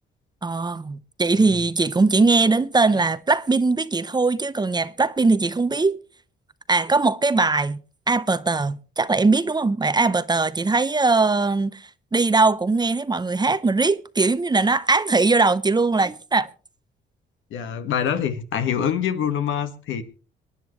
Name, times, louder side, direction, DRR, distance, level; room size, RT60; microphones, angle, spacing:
voice 1, 0.4-6.0 6.7-7.8 8.1-16.5, right 3 dB, 20° right, 0.8 m, -20 dB
voice 2, 17.5-20.0, left 8 dB, 80° left, 1.6 m, -25 dB
26.0 x 10.0 x 3.2 m
cardioid pair, 90°, 20 cm